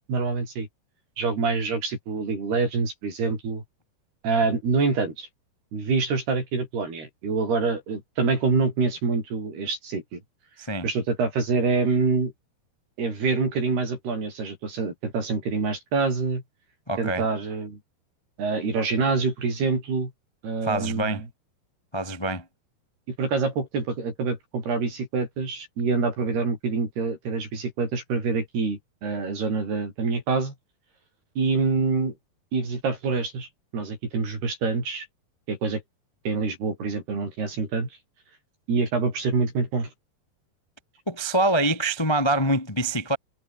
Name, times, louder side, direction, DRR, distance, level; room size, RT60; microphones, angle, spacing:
voice 1, 0.1-0.7 1.2-3.6 4.2-5.3 5.7-10.2 10.8-12.3 13.0-16.4 17.0-17.8 18.4-20.1 20.4-21.3 23.1-30.5 31.4-32.1 32.5-33.5 33.7-35.1 35.5-35.8 36.2-37.9 38.7-39.9, right 4 dB, 85° right, 10.0 m, -26 dB
voice 2, 16.9-17.3 20.6-21.2 21.9-22.4 41.1-43.2, right 1 dB, 15° left, 0.8 m, -25 dB
omnidirectional pair, 4.5 m